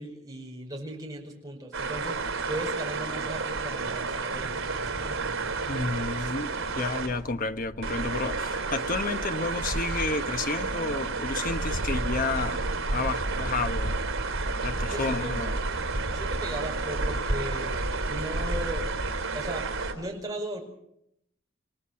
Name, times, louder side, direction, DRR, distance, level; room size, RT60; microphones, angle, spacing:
voice 1, 0.0-4.6 14.9-15.4 16.1-17.8 18.1-18.9 19.3-20.6, right 1 dB, 20° right, 5.3 m, -37 dB
sound 1, 1.7-7.1 7.8-19.9, right 3 dB, 85° right, 3.6 m, -30 dB
Thunder / Explosion, 4.3-12.5, equal, 35° right, 3.2 m, -45 dB
voice 2, 5.7-12.6 12.9-14.1 14.4-15.5, left 3 dB, 40° left, 1.1 m, -31 dB
28.5 x 18.5 x 5.8 m
head